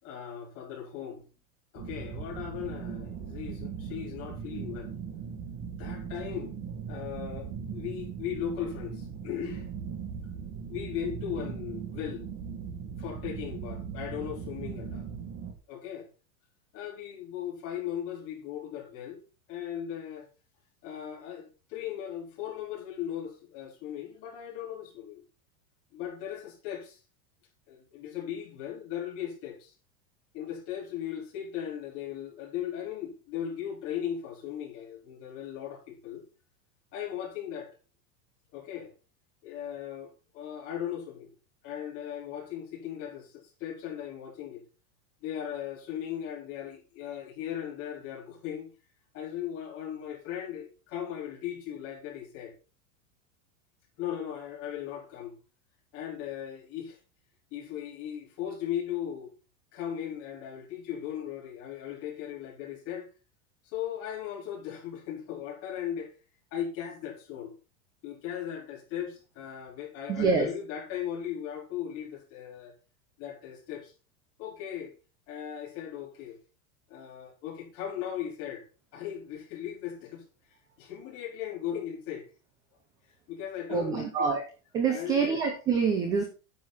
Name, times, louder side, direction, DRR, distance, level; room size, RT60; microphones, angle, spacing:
voice 1, 0.0-1.3 1.7-4.9 5.8-6.5 6.9-9.7 10.7-12.3 13.0-15.1 15.7-16.1 16.7-19.2 19.5-20.3 20.8-25.2 25.9-27.0 27.7-29.7 30.3-36.2 36.9-37.7 38.5-38.9 39.4-41.3 41.6-44.6 45.2-48.7 49.1-52.5 54.0-55.4 55.9-57.0 57.5-59.3 59.7-63.1 63.6-66.1 66.5-67.5 68.0-72.7 73.2-73.9 74.4-74.9 75.3-76.4 76.9-78.7 78.9-80.2 80.8-82.3 83.3-84.3 84.9-85.4, left 10 dB, 30° left, 3.9 m, -37 dB
sound 1, 1.8-15.5, right 7 dB, 25° right, 1.4 m, -39 dB
voice 2, 70.1-70.5 83.7-84.4 84.7-86.2, right 5 dB, 10° right, 0.4 m, -26 dB
9.6 x 7.6 x 4.0 m
supercardioid pair, 175°, 42 cm